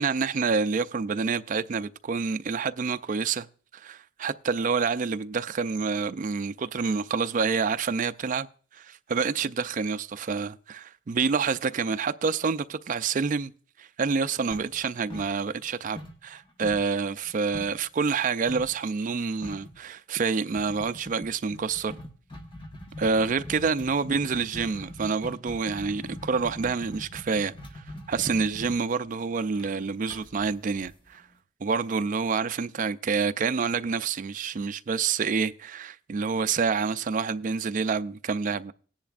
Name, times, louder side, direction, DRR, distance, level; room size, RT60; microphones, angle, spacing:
voice 1, 0.0-3.5 3.7-8.5 8.7-13.5 13.8-21.9 23.0-31.2 31.6-38.7, right 5 dB, 40° right, 0.4 m, -28 dB
sound 1, 14.5-15.7 16.0-17.9 18.5-18.8 19.1-19.2 19.4-19.8 20.6-31.4, left 1 dB, 25° left, 1.2 m, -42 dB
17.0 x 10.5 x 2.5 m
head